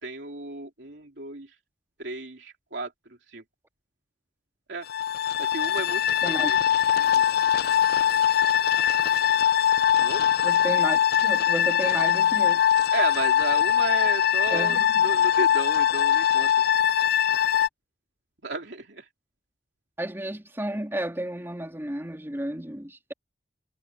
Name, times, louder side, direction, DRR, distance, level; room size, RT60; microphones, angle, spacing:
voice 1, 0.0-1.5 2.0-2.9 3.3-3.4 4.7-4.9 5.4-6.6 7.0-7.2 10.0-10.2 12.9-16.5 18.4-19.1, right 3 dB, 75° right, 3.2 m, -33 dB
sound 1, 4.9-17.7, left 9 dB, 60° left, 0.5 m, -22 dB
voice 2, 10.4-12.7 14.5-15.1 20.0-23.1, right 1 dB, 15° right, 2.8 m, -32 dB
head